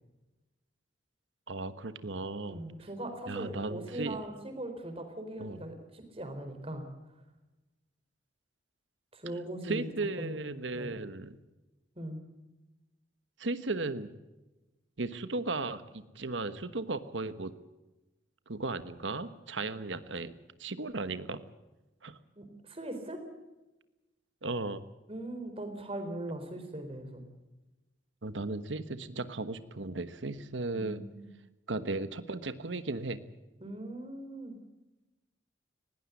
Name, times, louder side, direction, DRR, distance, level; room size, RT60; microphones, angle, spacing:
voice 1, 1.5-2.6 3.3-4.2 5.4-5.6 9.6-11.4 13.4-14.1 15.0-17.5 18.5-20.3 20.6-21.4 22.0-22.2 24.4-24.8 28.2-31.0 31.7-33.2, right 3 dB, 90° right, 12 dB, 1.3 m, -36 dB
voice 2, 2.5-6.8 9.1-9.9 10.2-10.9 12.0-12.2 22.4-23.2 25.1-27.2 30.7-31.3 33.6-34.6, right 1 dB, 30° right, 6 dB, 4.1 m, -40 dB
20.5 x 17.5 x 8.3 m, 1.1 s
head